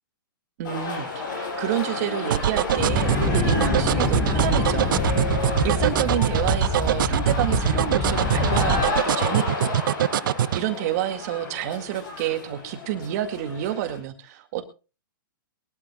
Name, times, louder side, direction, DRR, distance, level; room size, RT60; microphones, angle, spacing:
sound 1, 0.6-14.0, left 3 dB, 60° left, 6.5 m, -31 dB
voice 1, 0.6-9.7 10.0-10.2 10.5-14.6, right 12 dB, 45° right, 7 dB, 2.1 m, -29 dB
sound 2, 2.3-10.6, right 11 dB, 65° right, 0.5 m, -23 dB
sound 3, 2.8-8.8, left 3 dB, 20° left, 4.2 m, -26 dB
22.5 x 13.0 x 2.3 m, 0.32 s
hypercardioid pair, 140°, 12 cm